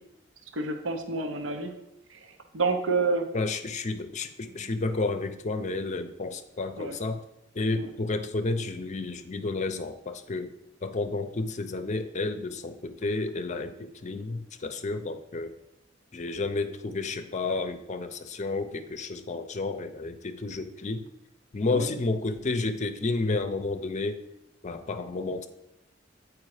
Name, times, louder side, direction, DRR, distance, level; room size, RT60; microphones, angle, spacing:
voice 1, 0.5-1.7 2.1-2.2 2.5-3.3 4.6-4.7 6.8-7.0 21.7-21.9, right 3 dB, 80° right, 5 dB, 0.8 m, -28 dB
voice 2, 3.3-7.2 7.5-10.5 10.8-15.5 16.1-21.0 21.5-24.2 24.6-25.5, left 3 dB, 40° left, 9 dB, 0.6 m, -31 dB
8.5 x 4.7 x 4.9 m, 0.86 s
head